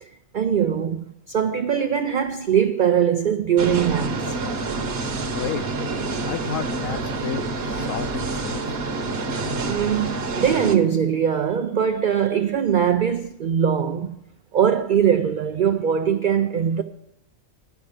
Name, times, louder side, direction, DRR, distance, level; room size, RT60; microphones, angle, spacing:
voice 1, 0.0-4.4 9.7-14.2 14.5-16.8, right 8 dB, 75° right, 0.4 m, -21 dB
sound 1, 3.6-10.8, right 3 dB, 50° right, 1.1 m, -27 dB
voice 2, 5.3-5.8 6.2-8.9, left 10 dB, 75° left, 0.9 m, -32 dB
10.5 x 6.0 x 8.9 m
omnidirectional pair, 1.4 m